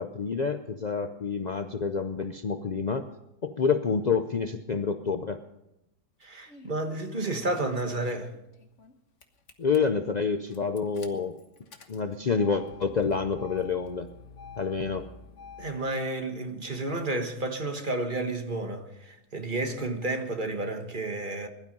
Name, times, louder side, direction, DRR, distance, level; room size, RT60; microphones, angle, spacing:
voice 1, 0.0-3.1 3.4-5.4 9.6-11.3 11.9-14.1 14.6-15.1, left 5 dB, 75° left, 0.4 m, -28 dB
Engine starting, 6.2-6.8 7.5-8.9 9.2-9.8 10.5-15.8, left 5 dB, 50° left, 1.6 m, -48 dB
voice 2, 6.2-8.3 15.6-21.5, right 2 dB, 30° right, 1.4 m, -31 dB
20.5 x 12.0 x 5.4 m
omnidirectional pair, 1.8 m